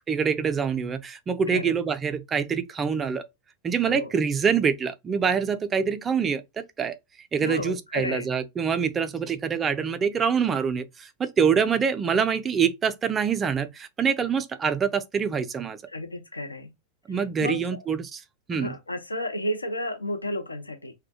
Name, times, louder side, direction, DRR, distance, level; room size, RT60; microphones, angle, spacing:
voice 1, 0.1-3.2 3.6-7.0 7.3-15.8 17.1-18.2 18.5-18.7, right 6 dB, 25° right, 0.3 m, -25 dB
voice 2, 7.4-8.3 15.9-16.7 17.1-17.8 18.5-20.9, left 1 dB, 85° left, 0.4 m, -32 dB
2.2 x 2.1 x 2.7 m
figure-of-eight pair, 85°, 0 cm